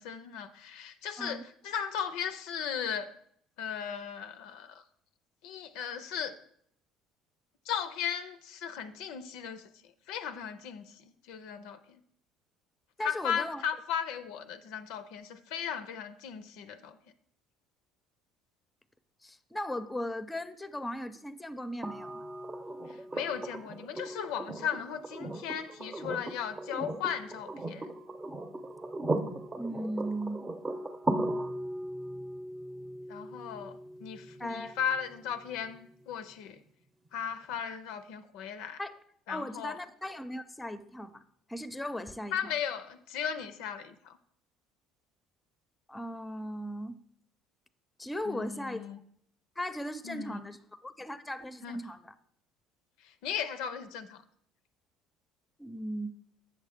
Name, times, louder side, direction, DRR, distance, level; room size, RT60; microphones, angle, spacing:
voice 1, 0.0-3.1 3.6-4.8 5.4-6.3 7.7-12.0 13.0-17.0 22.9-27.9 33.1-36.6 37.1-38.8 39.3-39.8 42.3-44.2 48.3-49.0 50.0-50.4 51.6-51.8 53.0-54.2, left 8 dB, 75° left, 0.4 m, -36 dB
voice 2, 13.0-13.6 19.2-22.2 29.5-30.4 34.4-34.8 38.8-38.9 39.3-41.2 41.5-42.5 45.9-47.0 48.0-48.9 49.6-50.6 50.8-52.1 55.6-56.1, equal, 10° left, 0.5 m, -37 dB
sound 1, 21.8-35.8 37.5-37.6, right 1 dB, 25° right, 0.7 m, -38 dB
7.9 x 6.4 x 3.5 m
hypercardioid pair, 65°, 0 cm